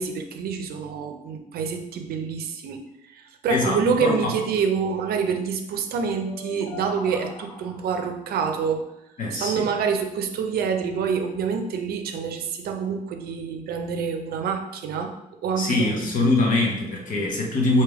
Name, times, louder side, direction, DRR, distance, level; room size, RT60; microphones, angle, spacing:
voice 1, 0.0-2.8 3.1-8.8 9.4-15.1 15.4-16.3, right 6 dB, 80° right, 5 dB, 0.5 m, -27 dB
voice 2, 3.5-4.4 9.2-9.6 15.6-17.8, left 2 dB, 60° left, -1 dB, 1.0 m, -23 dB
Krucifix Productions extinct bird chirp, 6.2-8.1, left 1 dB, 15° left, 0.8 m, -40 dB
3.4 x 2.8 x 4.6 m, 0.88 s
cardioid pair, 130°, 16 cm